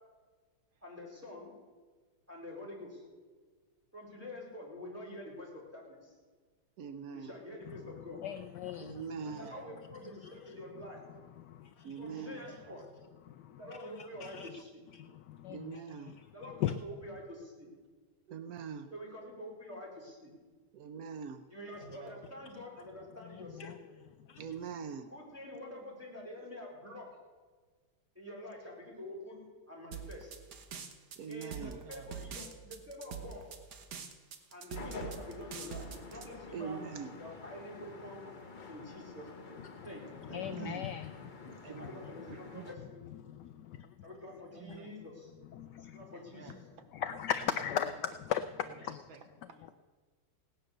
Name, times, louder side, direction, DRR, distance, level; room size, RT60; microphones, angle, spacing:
voice 1, 0.8-1.5 2.3-3.0 3.9-6.1 7.1-8.2 9.2-11.0 12.0-12.8 13.5-14.8 16.3-17.7 18.9-20.3 21.5-23.7 25.1-27.1 28.1-30.4 31.3-33.5 34.5-36.8 37.2-38.3 38.7-39.6 39.8-40.7 41.8-43.0 44.0-45.3 45.9-46.5, left 1 dB, 5° right, -5 dB, 4.4 m, -47 dB
voice 2, 6.8-7.3 8.8-9.5 11.8-12.4 15.5-16.1 18.3-18.9 20.7-21.4 24.4-25.1 31.2-31.8 36.5-37.1 40.3-40.8 41.5-42.0, right 6 dB, 85° right, 10 dB, 0.8 m, -42 dB
voice 3, 7.7-9.4 10.2-10.3 11.4-12.3 13.2-14.6 14.9-16.7 23.3-23.7 24.2-24.4 39.6-39.9 40.2-41.6 43.2-44.0 44.7-44.8 45.5-46.1 46.9-49.0, left 10 dB, 80° left, 11 dB, 0.9 m, -39 dB
voice 4, 9.2-9.7 12.1-12.9 21.8-22.3 31.6-32.2 40.4-40.7 41.6-42.7 44.5-44.9 46.1-46.9 47.8-47.9 48.6-49.7, right 6 dB, 70° right, 7 dB, 1.8 m, -53 dB
sound 1, 29.9-36.3, right 7 dB, 55° right, 1.5 m, -44 dB
sound 2, 34.7-42.8, left 4 dB, 35° left, 0.7 m, -49 dB
17.5 x 10.0 x 6.6 m, 1.4 s
omnidirectional pair, 2.4 m